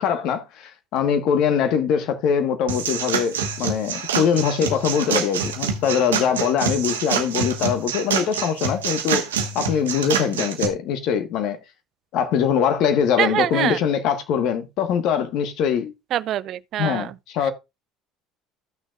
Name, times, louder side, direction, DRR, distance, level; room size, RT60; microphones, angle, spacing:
voice 1, 0.0-9.2 9.5-11.6 12.1-15.9 16.8-17.5, left 7 dB, 60° left, 1.5 m, -22 dB
sound 1, 2.7-10.7, right 7 dB, 85° right, 1.0 m, -26 dB
voice 2, 13.2-13.8 16.1-17.1 17.4-17.5, right 12 dB, 55° right, 0.4 m, -24 dB
14.5 x 6.3 x 2.5 m
hypercardioid pair, 70°, 0 cm